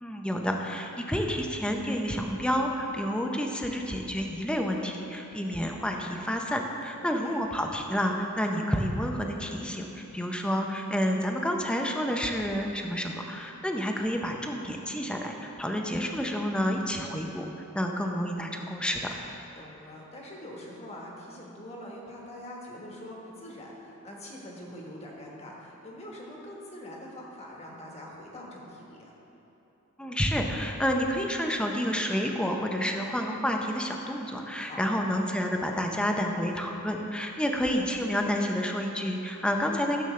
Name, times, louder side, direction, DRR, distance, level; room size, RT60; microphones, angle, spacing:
voice 1, 0.0-17.5 17.7-19.1 30.0-40.0, equal, 5° left, 2 dB, 0.6 m, -29 dB
voice 2, 7.0-7.4 19.6-29.1 34.6-35.0, left 1 dB, 30° left, -2 dB, 1.4 m, -44 dB
13.0 x 7.1 x 3.2 m, 3.0 s
head